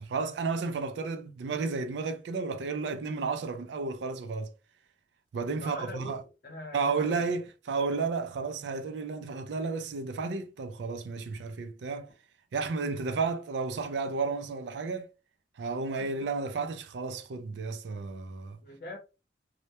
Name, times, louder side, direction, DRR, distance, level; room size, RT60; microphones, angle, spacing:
voice 1, 0.0-4.5 5.3-6.2 6.7-12.1 12.5-15.1 15.6-18.6, right 4 dB, 80° right, 0.4 m, -32 dB
voice 2, 5.5-6.2 6.4-7.3 16.0-16.1 18.6-19.0, left 1 dB, 55° left, 0.7 m, -42 dB
2.1 x 2.1 x 2.8 m
head